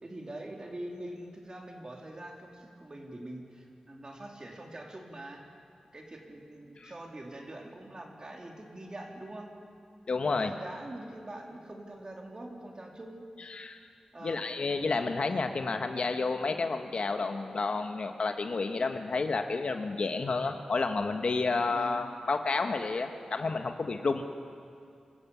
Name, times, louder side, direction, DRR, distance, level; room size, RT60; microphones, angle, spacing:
voice 1, 0.0-5.4 5.9-9.5 10.3-13.3 14.1-14.5 21.7-22.1, right 1 dB, 40° right, 1 dB, 3.6 m, -44 dB
voice 2, 10.1-10.5 13.5-13.8 14.2-24.2, left 3 dB, 60° left, 6 dB, 1.4 m, -30 dB
25.0 x 13.5 x 8.5 m, 2.4 s
cardioid pair, 50°, 2 cm